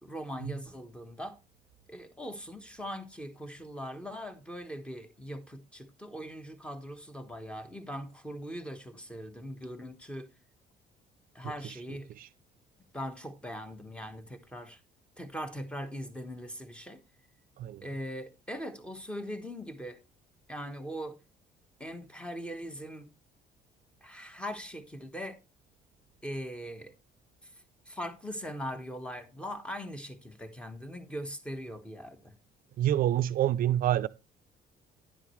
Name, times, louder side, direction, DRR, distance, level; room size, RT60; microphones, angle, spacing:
voice 1, 0.0-1.4 1.9-10.3 11.3-12.1 12.9-14.8 15.2-17.0 17.8-20.0 20.5-21.1 21.8-23.1 24.0-25.4 26.2-26.9 27.4-27.5 27.9-32.3, equal, 5° left, 1.2 m, -40 dB
voice 2, 32.8-34.1, right 12 dB, 60° right, 0.5 m, -27 dB
10.5 x 7.4 x 3.2 m
cardioid pair, 110°, 17 cm